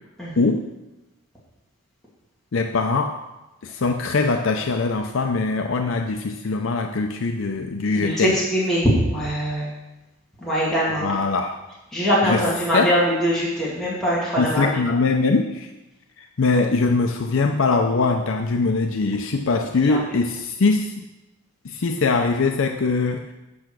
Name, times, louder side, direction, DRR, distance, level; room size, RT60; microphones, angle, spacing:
voice 1, 2.5-3.2 3.6-8.4 10.9-11.6 12.2-12.5 12.7-13.0 14.4-15.7 16.2-21.1 21.6-23.3, left 3 dB, 65° left, 5 dB, 0.5 m, -22 dB
voice 2, 7.9-9.7 10.4-11.0 11.9-14.7 19.9-20.0, equal, ahead, -9 dB, 2.3 m, -22 dB
8.6 x 5.7 x 6.2 m, 1.0 s
head